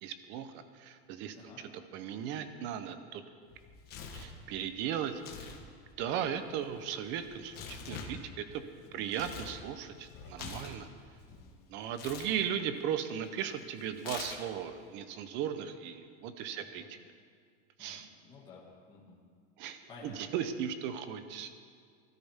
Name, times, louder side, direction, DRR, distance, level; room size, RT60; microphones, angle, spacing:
voice 1, 0.0-3.2 4.1-5.2 6.0-8.6 8.9-10.9 11.7-16.8 17.8-18.1 19.6-21.5, right 9 dB, 35° right, 10 dB, 0.9 m, -37 dB
Tearing, 3.5-4.4 5.1-5.6 5.9-9.6 9.9-11.4 11.9-12.3 14.0-14.6, left 6 dB, 30° left, 1.4 m, -45 dB
voice 2, 16.5-16.9 17.8-18.6 18.9-19.2 19.9-20.2, left 4 dB, 15° left, -6 dB, 2.2 m, -54 dB
20.0 x 13.5 x 3.7 m, 2.1 s
supercardioid pair, 170°, 31 cm